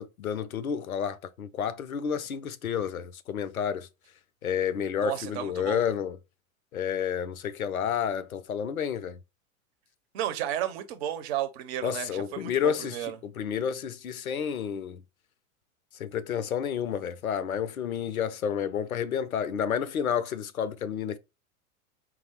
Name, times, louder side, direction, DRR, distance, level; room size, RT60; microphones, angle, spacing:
voice 1, 0.0-3.9 4.4-6.2 6.7-9.2 11.8-15.0 16.0-21.2, left 8 dB, 85° left, 0.5 m, -30 dB
voice 2, 5.0-5.8 10.1-13.2, right 11 dB, 45° right, 0.7 m, -33 dB
4.7 x 2.0 x 4.2 m
figure-of-eight pair, 90°, 41 cm